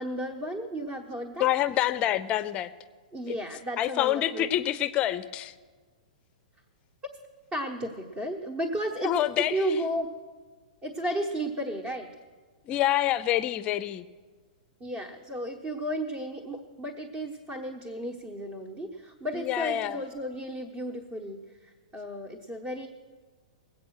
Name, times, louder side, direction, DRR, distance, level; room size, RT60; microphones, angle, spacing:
voice 1, 0.0-1.5 3.1-4.5 7.5-10.1 10.8-12.1 14.8-22.9, right 1 dB, 20° right, 0 dB, 1.1 m, -33 dB
voice 2, 1.4-2.7 3.3-3.4 3.8-5.5 9.0-9.7 12.7-14.0 19.3-20.0, left 13 dB, 30° left, 14 dB, 0.5 m, -27 dB
19.0 x 8.6 x 6.4 m, 1.4 s
hypercardioid pair, 140°, 4 cm